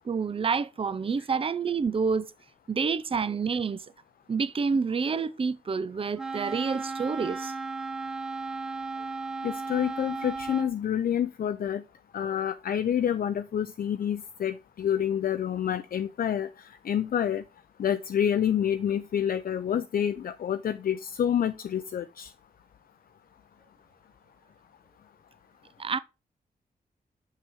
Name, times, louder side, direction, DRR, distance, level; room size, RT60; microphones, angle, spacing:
voice 1, 0.1-2.3 2.7-3.8 4.3-7.5 25.8-26.0, right 5 dB, 35° right, 0.5 m, -28 dB
Wind instrument woodwind instrument, 6.2-10.7, right 3 dB, 5° right, 1.0 m, -35 dB
voice 2, 9.4-11.8 12.1-16.5 16.8-17.4 17.8-22.3, left 9 dB, 65° left, 0.4 m, -28 dB
5.8 x 5.8 x 4.7 m
cardioid pair, 55°, 16 cm